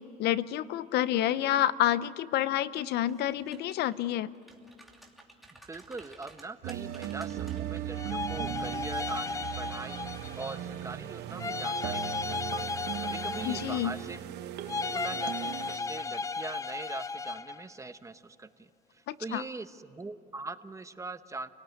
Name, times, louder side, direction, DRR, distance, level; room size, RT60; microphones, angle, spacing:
voice 1, 0.0-4.3 13.4-13.9 19.1-19.4, left 12 dB, 75° left, 17 dB, 0.7 m, -29 dB
sound 1, 3.0-4.0 4.4-7.8 8.2-8.4, right 1 dB, ahead, 2.8 m, -54 dB
voice 2, 5.5-10.0 10.4-12.6 13.0-14.2 14.8-21.5, right 3 dB, 20° right, 10 dB, 1.0 m, -42 dB
sound 2, 6.6-15.8, right 11 dB, 80° right, 1.1 m, -38 dB
sound 3, 7.9-10.7 11.4-14.2 14.7-17.6, left 4 dB, 20° left, 0.5 m, -35 dB
29.0 x 18.5 x 9.4 m, 2.5 s
cardioid pair, 110°, 17 cm